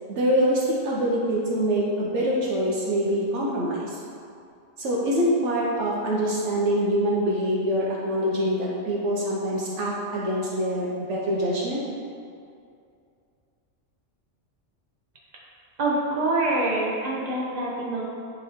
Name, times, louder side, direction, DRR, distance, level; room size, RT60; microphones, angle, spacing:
voice 1, 0.1-4.0 4.8-11.8, equal, 70° right, -4 dB, 1.3 m, -25 dB
voice 2, 15.8-18.0, right 2 dB, 35° right, -5 dB, 1.3 m, -25 dB
10.5 x 3.8 x 3.6 m, 2.4 s
omnidirectional pair, 1.3 m